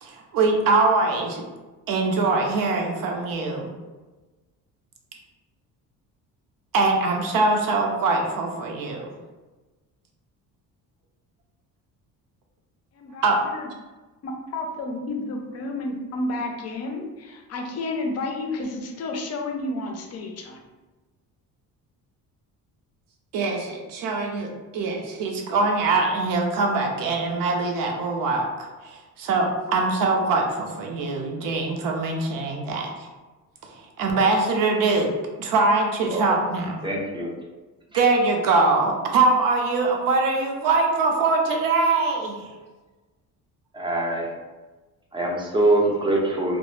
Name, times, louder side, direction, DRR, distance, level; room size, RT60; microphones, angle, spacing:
voice 1, 0.0-1.4 1.9-3.7 6.7-9.1 13.2-13.4 23.3-33.1 33.7-35.1 35.4-36.8 37.9-42.5, right 3 dB, 65° right, 2 dB, 0.5 m, -23 dB
voice 2, 12.9-13.7 14.2-20.6, left 2 dB, 45° left, 2 dB, 0.5 m, -31 dB
voice 3, 36.8-37.3 37.9-38.0 43.7-44.3 45.1-46.6, right 2 dB, 15° right, -1 dB, 0.5 m, -23 dB
2.0 x 2.0 x 3.0 m, 1.2 s
cardioid pair, 95°, 36 cm